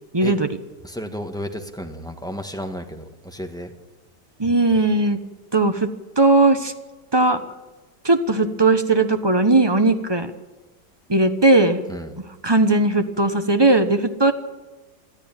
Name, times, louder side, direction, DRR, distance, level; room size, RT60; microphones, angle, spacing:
voice 1, 0.1-0.5 4.4-5.2 5.5-5.9 6.2-6.7 7.1-7.4 8.0-10.3 11.1-11.8 12.4-14.3, right 2 dB, 20° right, 8 dB, 0.8 m, -18 dB
voice 2, 0.8-3.7 11.9-12.1, equal, ahead, 4 dB, 1.4 m, -32 dB
22.0 x 13.5 x 9.0 m, 1.2 s
omnidirectional pair, 2.0 m